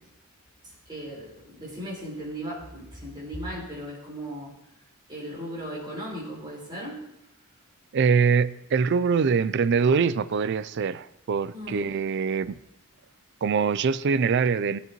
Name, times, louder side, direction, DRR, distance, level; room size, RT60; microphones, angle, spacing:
voice 1, 0.6-4.5 5.1-7.0 11.5-11.9, equal, 20° right, 4.5 m, -37 dB
voice 2, 7.9-12.6 13.4-14.8, right 5 dB, 55° right, 0.4 m, -23 dB
17.5 x 8.2 x 3.0 m
head